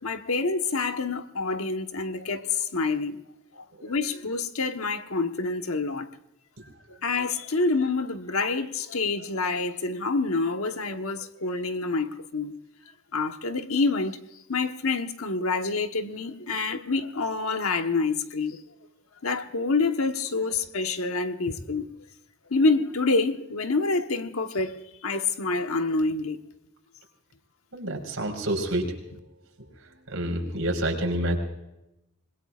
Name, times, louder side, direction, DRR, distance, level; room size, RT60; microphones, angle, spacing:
voice 1, 0.0-3.2 3.6-6.1 7.0-12.6 13.1-14.2 14.5-18.6 19.2-21.9 22.5-24.8 25.0-26.4, left 3 dB, 75° left, 1.3 m, -27 dB
voice 2, 27.7-28.9 29.8-31.4, right 1 dB, 65° right, 4.8 m, -28 dB
26.5 x 21.0 x 2.5 m
head